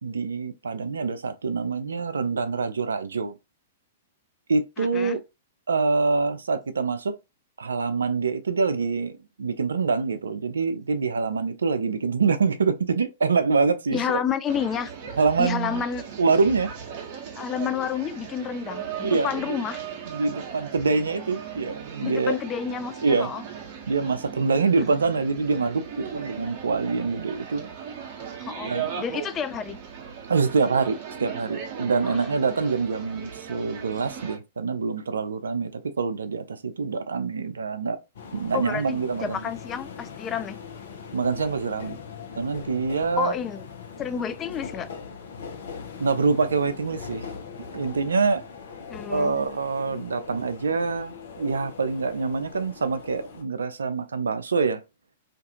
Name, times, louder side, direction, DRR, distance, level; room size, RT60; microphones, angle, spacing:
voice 1, 0.0-3.3 4.5-5.2 5.7-7.2 7.6-14.2 15.2-15.8 16.2-16.7 19.0-19.6 20.1-22.4 23.0-23.3 23.9-27.7 28.6-28.9 30.3-38.0 38.3-39.4 41.1-42.0 42.4-43.3 46.0-47.3 47.7-48.4 49.1-54.8, right 4 dB, 70° right, 0.4 m, -25 dB
voice 2, 4.8-5.2 13.9-14.9 15.4-16.0 17.4-19.8 22.0-23.4 28.4-28.7 29.0-29.8 32.0-32.1 38.5-40.6 43.2-43.6 44.0-44.9 48.9-49.5 49.9-50.0, left 7 dB, 25° left, 0.3 m, -30 dB
sound 1, 14.5-34.4, right 7 dB, 40° right, 0.8 m, -38 dB
sound 2, 38.2-53.4, left 6 dB, 60° left, 0.6 m, -41 dB
2.5 x 2.3 x 2.7 m
figure-of-eight pair, 105°, 0 cm